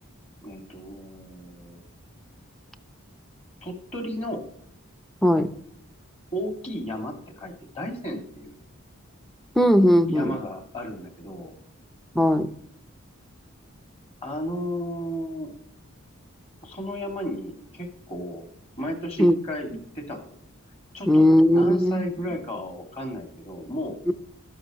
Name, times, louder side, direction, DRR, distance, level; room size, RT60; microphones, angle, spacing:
voice 1, 0.4-1.8 3.6-4.4 6.3-8.6 10.0-11.5 14.2-15.5 16.6-18.5 18.8-20.4 20.9-24.0, equal, 30° left, 3 dB, 2.1 m, -33 dB
voice 2, 9.6-10.3 12.2-12.5 19.2-19.3 21.1-22.0 24.1-24.2, equal, ahead, 9 dB, 0.6 m, -18 dB
12.5 x 10.0 x 3.0 m, 0.69 s
head